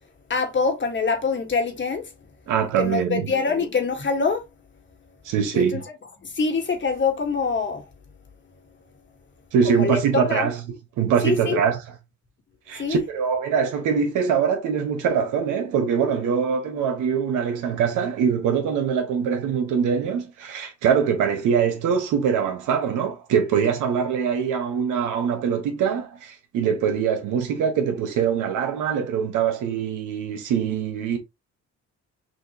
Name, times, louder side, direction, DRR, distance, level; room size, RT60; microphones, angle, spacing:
voice 1, 0.3-2.0 2.8-4.4 5.5-5.8 6.2-7.9 9.6-10.5 11.2-11.6 12.8-13.0, left 4 dB, 40° left, 1.6 m, -24 dB
voice 2, 2.5-3.3 5.2-5.8 9.5-10.6 11.0-11.8 12.7-31.2, right 7 dB, 90° right, 1.4 m, -23 dB
6.2 x 2.8 x 2.9 m
cardioid pair, 90°, 30 cm